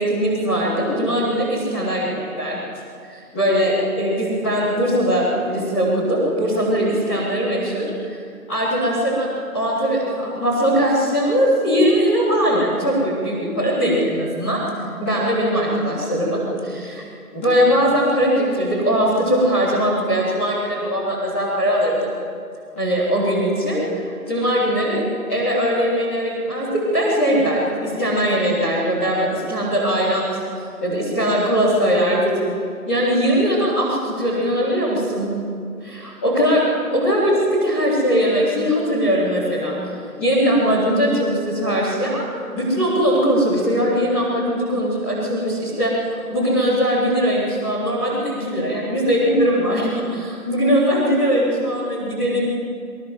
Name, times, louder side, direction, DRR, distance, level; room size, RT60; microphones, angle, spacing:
voice 1, 0.0-2.6 3.0-8.2 8.5-9.3 9.5-14.6 15.0-17.0 17.3-22.1 22.8-25.0 25.3-30.2 30.8-32.3 32.9-35.3 35.8-36.6 36.9-39.7 40.2-42.2 42.5-45.9 46.3-50.2 50.4-52.5, equal, 10° left, -14 dB, 3.9 m, -20 dB
29.5 x 22.5 x 8.1 m, 2.4 s
figure-of-eight pair, 175°, 46 cm